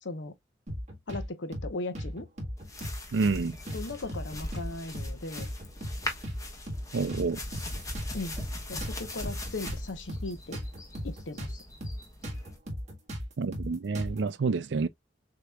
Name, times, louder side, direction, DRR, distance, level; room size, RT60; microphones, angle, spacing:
voice 1, 0.0-0.3 1.1-2.3 3.7-5.5 8.1-8.4 8.7-10.6 11.0-11.5, left 2 dB, 75° left, 0.9 m, -37 dB
sound 1, 0.7-1.3 1.5-1.7 1.9-3.0 3.2-3.4 3.7-4.7 4.9-5.1 5.4-6.4 6.7-6.8 7.1-8.5 8.8-11.5 11.8-12.0 12.2-14.3, equal, 40° right, 1.8 m, -36 dB
sound 2, 2.6-12.6, left 1 dB, 20° left, 1.1 m, -41 dB
voice 2, 3.1-3.5 6.9-7.4 13.4-14.9, right 4 dB, 65° right, 0.5 m, -28 dB
6.4 x 3.0 x 2.2 m
head